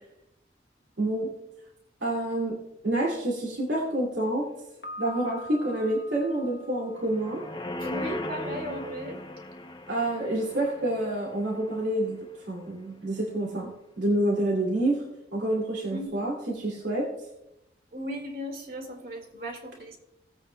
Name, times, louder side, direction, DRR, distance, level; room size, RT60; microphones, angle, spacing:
voice 1, 1.0-1.3 2.0-2.6 2.8-4.5 5.0-7.4 9.9-12.2 12.5-13.7 14.0-15.0 15.3-17.1, right 1 dB, 75° right, -2 dB, 2.4 m, -28 dB
Piano, 4.8-7.7, left 1 dB, 65° left, 1.0 m, -44 dB
sound 1, 7.0-12.3 12.7-12.8, left 2 dB, 25° left, 0.6 m, -38 dB
voice 2, 7.8-9.2 15.9-16.2 17.9-20.0, equal, 55° right, 4 dB, 1.9 m, -36 dB
19.0 x 8.3 x 2.2 m, 0.86 s
head